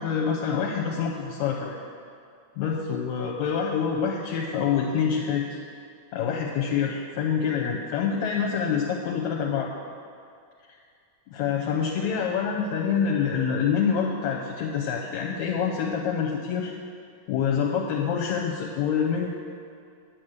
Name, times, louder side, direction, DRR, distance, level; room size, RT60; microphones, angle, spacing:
voice 1, 0.0-1.8 2.6-5.6 6.1-9.7 10.7-10.8 11.3-16.7 17.3-19.3, left 7 dB, 75° left, 0 dB, 2.1 m, -26 dB
9.1 x 9.0 x 6.4 m, 2.3 s
omnidirectional pair, 3.4 m